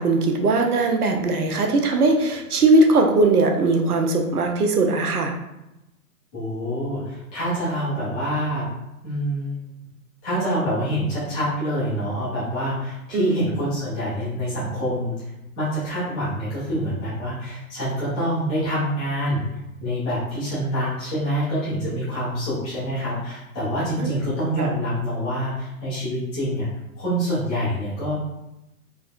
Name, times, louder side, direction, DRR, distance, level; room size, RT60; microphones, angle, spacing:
voice 1, 0.0-5.3 13.1-13.4 24.0-24.1 24.6-24.7, right 2 dB, 85° right, 4 dB, 0.6 m, -19 dB
voice 2, 6.3-8.7 9.0-9.6 10.2-15.1 15.6-19.4 19.8-26.7 26.9-28.1, equal, 5° left, -13 dB, 0.3 m, -26 dB
3.5 x 2.0 x 2.3 m, 0.93 s
figure-of-eight pair, 115°, 45 cm